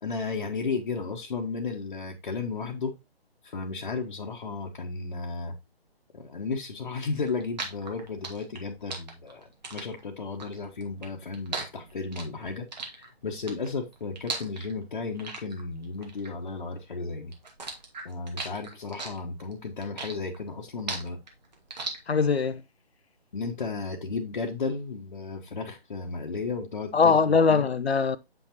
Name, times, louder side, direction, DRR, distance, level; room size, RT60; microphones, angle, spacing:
voice 1, 0.0-3.0 3.4-5.5 6.1-17.3 18.0-21.2 23.3-27.7, left 4 dB, 45° left, 1.2 m, -34 dB
sound 1, 7.2-17.0 17.3-22.5, right 4 dB, 45° right, 2.3 m, -38 dB
voice 2, 22.1-22.6 26.9-28.2, left 5 dB, 75° left, 0.7 m, -21 dB
8.0 x 5.9 x 3.0 m
figure-of-eight pair, 150°, 31 cm